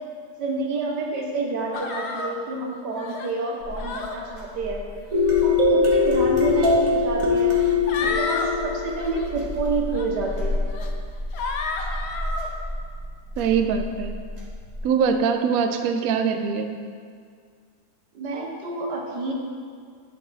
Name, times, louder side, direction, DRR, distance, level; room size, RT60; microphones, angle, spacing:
voice 1, 0.4-4.8 5.4-7.6 8.0-10.6 18.1-19.3, right 3 dB, 90° right, 0 dB, 1.7 m, -29 dB
sound 1, 1.7-2.3 3.0-3.3 3.8-4.2 5.1-5.4 6.5-6.6 7.5-8.5 8.9-9.3 9.9-10.1 10.7-10.9 11.3-12.5, left 3 dB, 60° left, 0.7 m, -31 dB
sound 2, 3.6-14.8, left 1 dB, 40° right, 1.9 m, -34 dB
sound 3, 5.1-9.6, left 4 dB, 55° right, 1.5 m, -21 dB
voice 2, 13.4-14.2 14.8-16.8, right 6 dB, 70° right, 7 dB, 0.9 m, -23 dB
11.0 x 4.7 x 4.0 m, 2.1 s
omnidirectional pair, 1.8 m